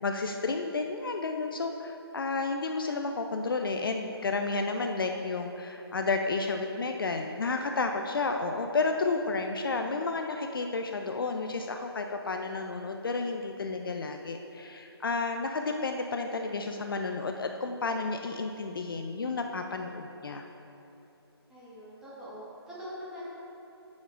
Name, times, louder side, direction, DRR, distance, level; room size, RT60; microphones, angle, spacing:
voice 1, 0.0-20.5, left 3 dB, 55° left, 4 dB, 0.5 m, -31 dB
voice 2, 21.5-23.2, equal, 5° right, -10 dB, 1.6 m, -43 dB
12.5 x 7.2 x 2.5 m, 2.9 s
figure-of-eight pair, 150°, 14 cm